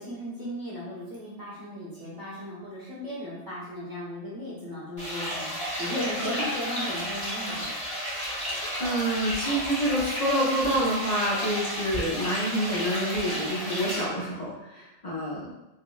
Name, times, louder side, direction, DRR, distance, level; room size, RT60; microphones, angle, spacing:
voice 1, 0.0-7.7, left 1 dB, 30° right, -8 dB, 0.4 m, -36 dB
sound 1, 5.0-14.0, equal, 20° left, 0.7 m, -32 dB
voice 2, 8.5-15.5, right 1 dB, 80° left, -6 dB, 0.3 m, -28 dB
3.4 x 2.0 x 2.2 m, 1.0 s
omnidirectional pair, 1.3 m